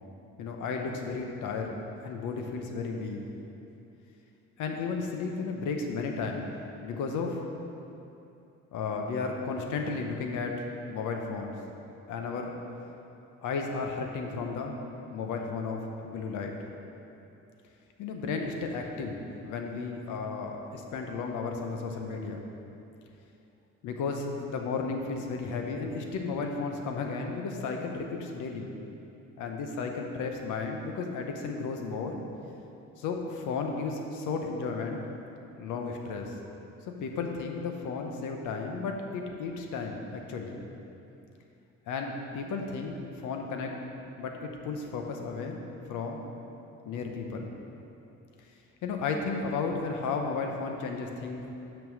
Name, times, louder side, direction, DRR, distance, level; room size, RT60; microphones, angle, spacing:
voice 1, 0.4-3.2 4.6-6.5 6.8-7.4 8.7-10.6 10.9-11.5 12.1-12.5 13.4-14.7 15.1-16.5 18.0-19.2 19.4-22.4 23.8-28.7 29.4-32.2 33.0-35.0 35.6-36.3 37.0-40.6 41.9-43.0 43.2-43.8 44.2-45.6 45.9-46.2 46.8-47.5 48.8-51.5, left 4 dB, 85° left, 3 dB, 0.9 m, -33 dB
6.0 x 5.5 x 6.3 m, 2.8 s
cardioid pair, 90°, 30 cm